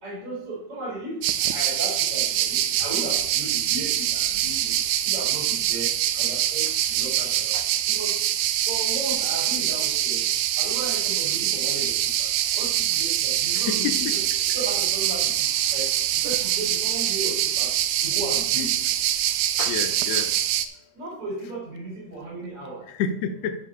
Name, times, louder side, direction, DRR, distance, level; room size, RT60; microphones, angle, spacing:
voice 1, 0.0-4.8 5.0-7.6 7.9-8.2 8.7-10.2 10.6-12.3 12.5-14.2 14.5-15.9 16.2-17.7 18.0-18.7 20.9-22.8, right 2 dB, 40° right, -5 dB, 4.6 m, -35 dB
sound 1, 1.2-20.7, right 12 dB, 80° right, 1.8 m, -24 dB
voice 2, 13.7-14.1 19.6-20.3 22.9-23.6, left 7 dB, 85° left, 8 dB, 1.4 m, -29 dB
12.0 x 4.8 x 5.5 m, 0.68 s
omnidirectional pair, 3.8 m